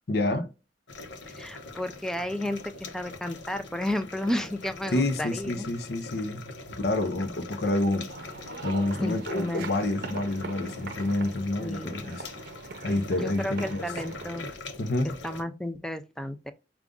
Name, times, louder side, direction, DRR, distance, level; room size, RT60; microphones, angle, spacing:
voice 1, 0.1-0.5 4.9-8.1 8.6-12.2 12.8-13.9 14.8-15.1, left 2 dB, 60° left, 0.6 m, -28 dB
sound 1, 0.9-15.4, left 3 dB, 85° left, 0.9 m, -43 dB
voice 2, 1.3-5.7 9.0-9.7 11.6-12.0 13.0-14.5 15.2-16.5, left 1 dB, 5° left, 0.4 m, -32 dB
sound 2, 8.1-14.6, right 3 dB, 55° right, 0.7 m, -42 dB
5.0 x 2.3 x 3.6 m
head